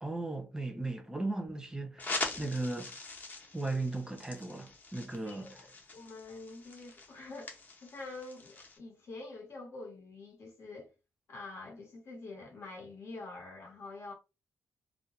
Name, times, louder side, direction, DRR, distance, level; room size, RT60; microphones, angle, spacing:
voice 1, 0.0-3.0 3.5-5.7, right 2 dB, 15° right, 0.4 m, -37 dB
sound 1, 2.0-8.8, left 3 dB, 35° left, 0.8 m, -43 dB
voice 2, 5.3-5.7 5.9-10.9 11.3-14.1, left 3 dB, 65° left, 1.0 m, -46 dB
2.2 x 2.1 x 2.9 m
cardioid pair, 105°, 5 cm